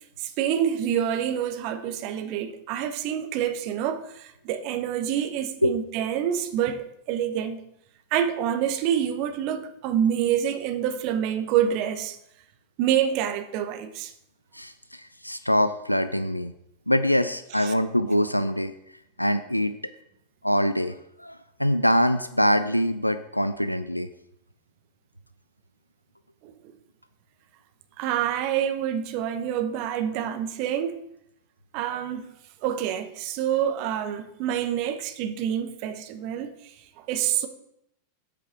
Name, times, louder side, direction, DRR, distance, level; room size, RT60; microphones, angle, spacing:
voice 1, 0.2-7.6 8.1-12.2 12.8-14.1 17.6-17.7 26.4-26.5 28.0-30.9 31.7-32.3 32.6-37.5, right 9 dB, 45° right, 0.9 m, -27 dB
voice 2, 14.5-16.5 16.9-18.7 19.2-19.7 20.4-24.1, equal, 90° left, 0.4 m, -24 dB
8.2 x 5.0 x 5.9 m
figure-of-eight pair, 90°, 0 cm